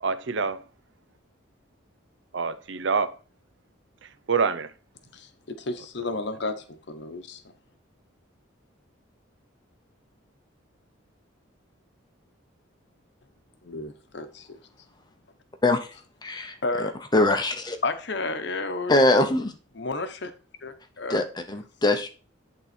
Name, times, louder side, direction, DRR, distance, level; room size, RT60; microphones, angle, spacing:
voice 1, 0.0-0.6 2.3-3.2 4.0-4.7, right 5 dB, 60° right, 0.6 m, -26 dB
voice 2, 5.1-7.4 13.6-14.6 16.6-16.9 17.8-19.3 19.7-20.3 20.6-21.2, left 3 dB, 55° left, 0.9 m, -32 dB
voice 3, 16.2-16.6 17.1-17.8 18.9-19.5 21.1-22.1, left 2 dB, 20° left, 0.7 m, -22 dB
11.0 x 3.8 x 4.3 m
head